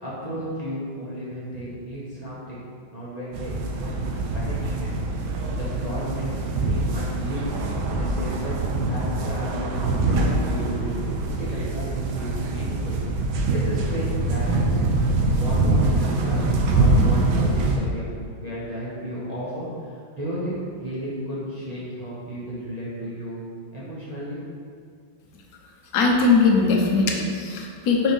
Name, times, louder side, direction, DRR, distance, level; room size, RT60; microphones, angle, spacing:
voice 1, 0.0-2.6 2.9-4.0 4.3-5.0 5.2-7.5 7.9-13.0 13.5-14.8 15.4-16.4 16.7-18.1 18.4-23.4 23.7-24.6, right 1 dB, 30° right, -9 dB, 0.9 m, -33 dB
sound 1, 3.3-17.8, right 2 dB, 85° right, 1.5 m, -24 dB
voice 2, 25.9-28.1, left 4 dB, 60° left, -1 dB, 1.2 m, -20 dB
4.4 x 4.2 x 5.3 m, 2.2 s
omnidirectional pair, 2.2 m